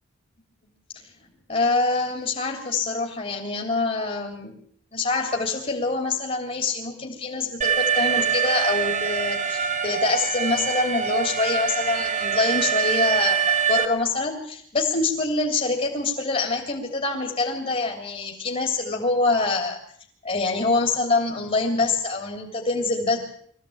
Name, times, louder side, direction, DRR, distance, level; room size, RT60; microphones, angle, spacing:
voice 1, 1.5-4.5 4.9-19.8 20.2-23.2, left 3 dB, 30° left, 2 dB, 3.4 m, -25 dB
Alarm, 7.6-13.9, right 7 dB, 35° right, 1.5 m, -24 dB
23.0 x 16.0 x 8.7 m, 0.62 s
head